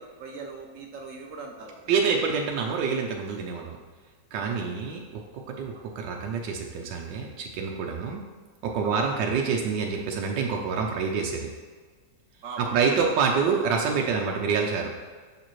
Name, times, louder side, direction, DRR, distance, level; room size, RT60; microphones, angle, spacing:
voice 1, 0.0-1.8 4.3-4.7 5.7-5.9 8.8-9.1 12.4-13.0, right 4 dB, 65° right, 2 dB, 0.8 m, -41 dB
voice 2, 1.9-3.8 4.3-5.2 5.5-8.2 8.6-11.5 12.6-14.9, right 5 dB, 85° right, 1 dB, 1.3 m, -27 dB
6.8 x 5.9 x 3.0 m, 1.5 s
omnidirectional pair, 1.9 m